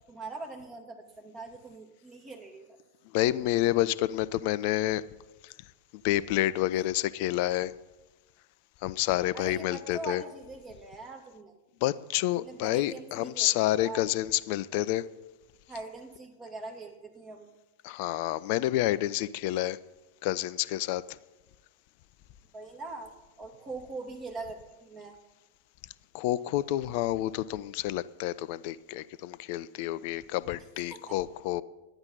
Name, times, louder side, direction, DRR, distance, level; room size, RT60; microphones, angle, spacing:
voice 1, 0.1-2.8 9.3-11.6 12.4-14.1 15.7-17.5 22.5-23.1 23.4-25.2 30.6-30.7 30.9-31.2, right 3 dB, 25° right, 2.3 m, -42 dB
voice 2, 3.1-5.0 5.4-5.5 6.0-7.7 8.8-10.2 11.8-15.1 17.8-19.8 20.2-21.2 26.1-31.6, left 15 dB, 45° left, 0.5 m, -29 dB
11.5 x 9.9 x 5.4 m
figure-of-eight pair, 90°, 0 cm